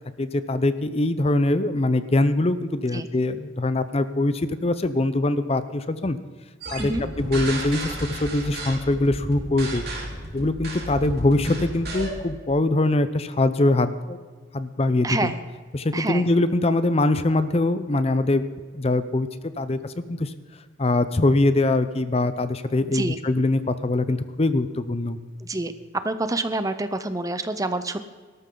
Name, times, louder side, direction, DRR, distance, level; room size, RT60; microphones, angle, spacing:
voice 1, 0.2-6.2 6.7-6.9 7.2-9.8 10.3-14.2 14.5-15.3 15.7-18.4 18.7-20.3 20.8-25.2, left 2 dB, 30° left, 12 dB, 0.6 m, -23 dB
sound 1, 6.6-12.2, right 1 dB, 50° right, 3.8 m, -33 dB
voice 2, 15.0-15.4 15.9-16.3 22.9-23.2 25.4-25.7 26.0-28.0, right 2 dB, 15° right, 11 dB, 0.7 m, -27 dB
18.0 x 13.5 x 3.9 m, 1.5 s
head